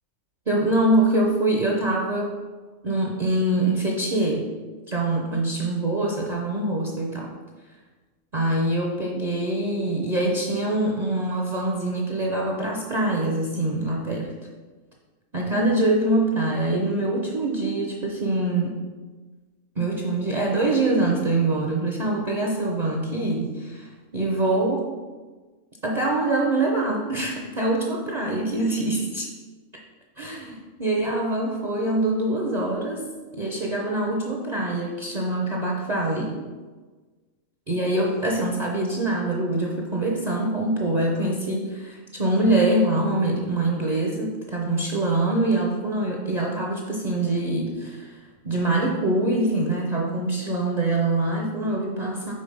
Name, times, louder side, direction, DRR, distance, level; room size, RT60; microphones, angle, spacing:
voice 1, 0.5-2.3 2.8-4.5 4.9-7.3 8.3-14.3 15.3-18.8 19.8-24.9 25.8-29.3 30.2-33.0 33.4-36.4 37.7-48.2 48.4-52.3, right 2 dB, 45° right, -1 dB, 0.6 m, -24 dB
5.2 x 3.8 x 5.3 m, 1.3 s
omnidirectional pair, 1.4 m